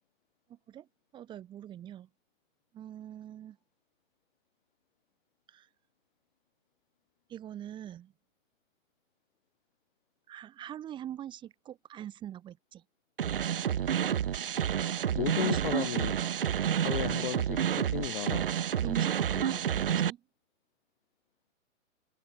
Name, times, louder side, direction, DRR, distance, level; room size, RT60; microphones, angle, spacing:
voice 1, 0.5-0.9 1.1-2.1 2.7-3.6 5.5-5.7 7.3-8.1 10.3-12.8 15.4-15.6 18.8-20.2, right 11 dB, 10° right, 6.4 m, -43 dB
sound 1, 13.2-20.1, right 9 dB, 40° right, 0.8 m, -29 dB
voice 2, 15.1-18.5, left 11 dB, 35° left, 2.2 m, -35 dB
hypercardioid pair, 170°, 41 cm